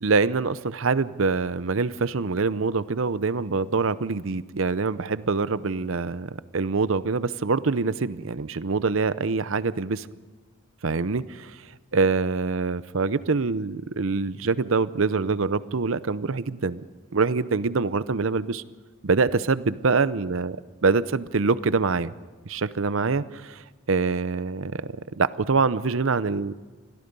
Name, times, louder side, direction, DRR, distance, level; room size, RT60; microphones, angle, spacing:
voice 1, 0.0-10.1 10.8-11.6 11.9-16.8 17.1-18.6 19.0-20.6 20.8-22.1 22.4-23.6 23.9-26.5, right 4 dB, 65° right, 16 dB, 0.7 m, -25 dB
27.5 x 21.5 x 5.4 m, 1.4 s
head